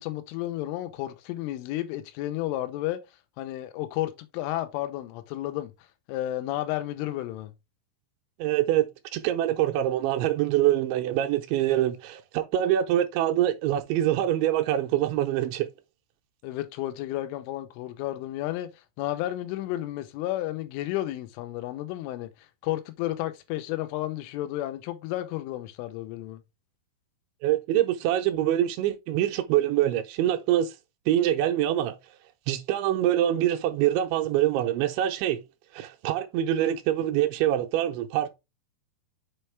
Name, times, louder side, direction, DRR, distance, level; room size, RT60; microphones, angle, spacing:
voice 1, 0.0-3.0 3.4-5.7 6.1-7.5 11.7-11.8 16.4-26.4, left 14 dB, 90° left, 3.3 m, -32 dB
voice 2, 8.4-8.9 9.1-15.7 27.4-30.8 31.1-32.0 32.5-35.4 35.7-38.3, right 12 dB, 80° right, 2.9 m, -25 dB
7.2 x 4.4 x 3.4 m
omnidirectional pair, 5.5 m